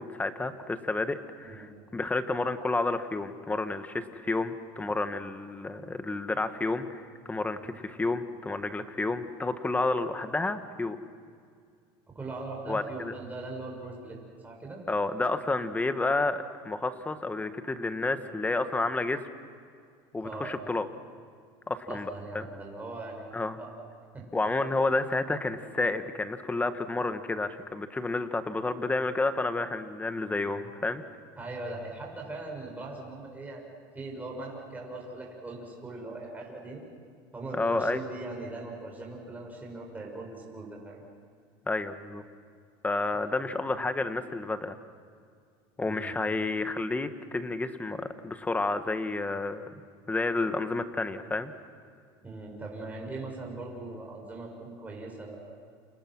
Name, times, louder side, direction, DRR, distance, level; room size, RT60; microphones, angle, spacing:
voice 1, 0.0-11.0 12.7-13.1 14.9-19.2 20.1-20.9 21.7-22.5 23.3-23.6 24.3-31.0 37.5-38.0 41.7-42.2 42.8-44.8 45.8-49.7 50.1-51.5, left 3 dB, 10° left, 9 dB, 1.6 m, -30 dB
voice 2, 12.1-14.2 14.4-14.8 20.2-20.5 21.9-23.8 24.1-24.2 31.4-33.7 33.9-36.8 37.3-41.0 43.1-43.2 45.8-46.1 52.2-55.6, right 2 dB, 15° right, -1 dB, 6.2 m, -40 dB
29.5 x 27.5 x 6.2 m, 2.2 s
supercardioid pair, 120°, 12 cm